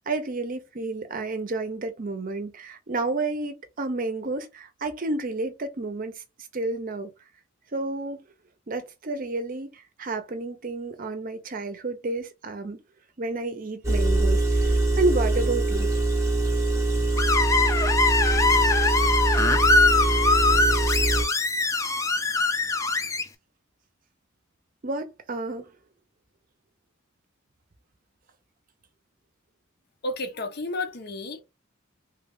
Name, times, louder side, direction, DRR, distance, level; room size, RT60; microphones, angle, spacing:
voice 1, 0.0-6.2 6.5-7.1 7.7-8.2 8.7-12.8 13.2-15.9 24.8-25.7, right 2 dB, 45° right, 0.6 m, -30 dB
Engine, 13.8-21.2, right 2 dB, 15° right, 0.8 m, -23 dB
Screech, 17.2-23.2, left 3 dB, 15° left, 0.3 m, -22 dB
voice 2, 30.0-31.4, left 2 dB, 50° left, 0.7 m, -32 dB
3.4 x 2.4 x 3.5 m
head